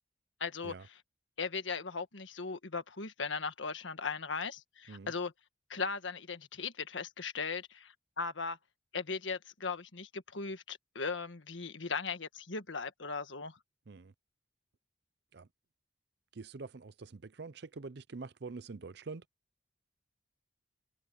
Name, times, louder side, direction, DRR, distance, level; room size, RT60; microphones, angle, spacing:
voice 1, 0.4-1.0 1.4-5.3 5.7-8.6 8.9-13.6, left 4 dB, 80° left, 1.5 m, -38 dB
voice 2, 16.3-19.2, right 4 dB, 60° right, 0.6 m, -45 dB
head